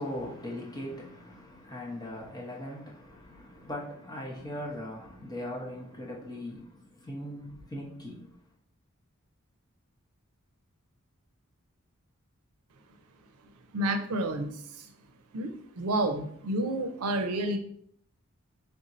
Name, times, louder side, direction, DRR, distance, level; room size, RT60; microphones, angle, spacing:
voice 1, 0.0-8.3, left 1 dB, 20° left, 0.9 m, -39 dB
voice 2, 13.7-14.9 15.3-17.6, right 1 dB, 90° right, 0.5 m, -30 dB
3.5 x 2.6 x 4.1 m
head